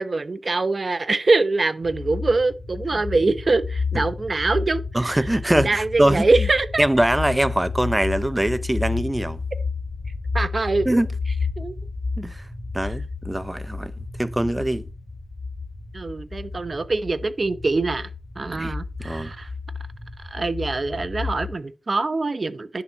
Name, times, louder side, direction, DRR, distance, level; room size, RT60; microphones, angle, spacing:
voice 1, 0.0-5.2 5.5-6.8 10.3-11.0 11.6-11.8 15.9-18.1 18.4-19.5 20.3-22.8, right 3 dB, 50° right, 0.9 m, -24 dB
sound 1, 1.8-21.5, left 4 dB, 25° left, 2.5 m, -31 dB
voice 2, 4.9-6.3 6.8-9.4 10.8-11.1 12.2-12.4 12.7-13.9 14.2-14.8 18.5-18.7 19.0-19.3, right 1 dB, 15° right, 0.7 m, -22 dB
10.5 x 4.3 x 6.3 m
wide cardioid pair, 70°, 0 cm